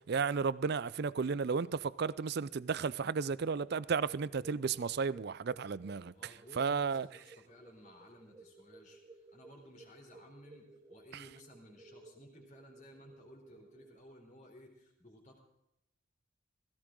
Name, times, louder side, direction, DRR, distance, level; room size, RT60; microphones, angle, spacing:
voice 1, 0.1-6.1 6.6-7.1, right 5 dB, 50° right, 0.4 m, -33 dB
sound 1, 4.0-14.0, right 2 dB, 20° right, 1.2 m, -58 dB
voice 2, 6.1-15.4, left 1 dB, 35° left, 3.5 m, -57 dB
16.5 x 16.0 x 3.8 m
head